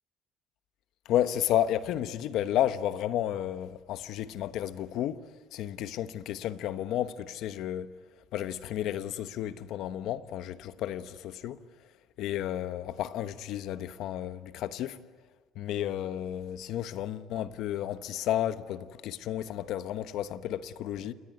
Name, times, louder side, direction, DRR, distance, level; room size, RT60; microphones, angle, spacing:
voice 1, 1.1-5.2 5.5-7.9 8.3-11.6 12.2-15.0 15.5-21.1, left 11 dB, 70° left, 1.1 m, -32 dB
28.5 x 21.0 x 9.7 m
cardioid pair, 130°, 0 cm